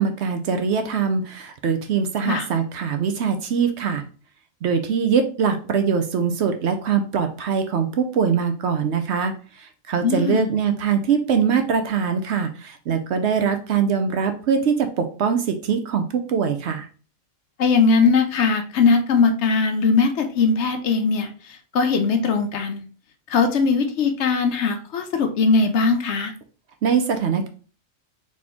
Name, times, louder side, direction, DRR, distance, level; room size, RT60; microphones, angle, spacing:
voice 1, 0.0-4.0 4.6-16.9 26.8-27.5, right 6 dB, 65° right, 7 dB, 0.8 m, -22 dB
voice 2, 10.0-10.5 17.6-22.9 23.3-26.3, left 4 dB, 65° left, 7 dB, 0.8 m, -20 dB
4.3 x 2.9 x 3.4 m, 0.38 s
omnidirectional pair, 1.4 m